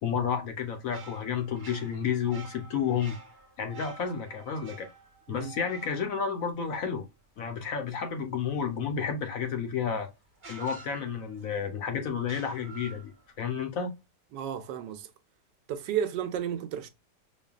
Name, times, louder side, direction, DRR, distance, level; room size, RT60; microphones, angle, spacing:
voice 1, 0.0-3.2 3.6-4.9 5.3-7.0 7.4-10.1 10.5-13.1 13.4-13.9, left 7 dB, 60° left, 1.0 m, -31 dB
sound 1, 0.6-7.2 9.5-9.6 10.4-11.6 12.2-13.3, right 4 dB, 40° right, 1.1 m, -49 dB
voice 2, 14.3-15.1 15.7-16.9, right 9 dB, 90° right, 1.3 m, -32 dB
5.3 x 2.2 x 2.3 m
omnidirectional pair, 1.8 m